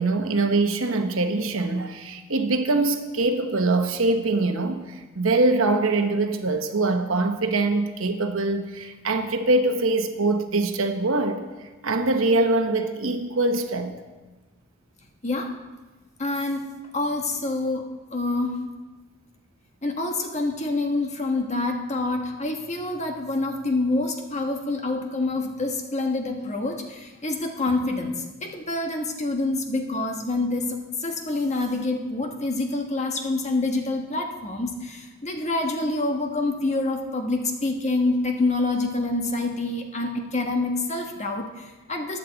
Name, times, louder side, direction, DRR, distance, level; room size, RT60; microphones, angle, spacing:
voice 1, 0.0-11.4 11.8-13.9, right 2 dB, 75° right, 1.1 m, -23 dB
voice 2, 15.2-15.5 16.2-17.8 18.1-18.7 19.8-28.1 28.4-42.2, left 2 dB, 35° left, 1.3 m, -27 dB
15.0 x 10.0 x 4.0 m
head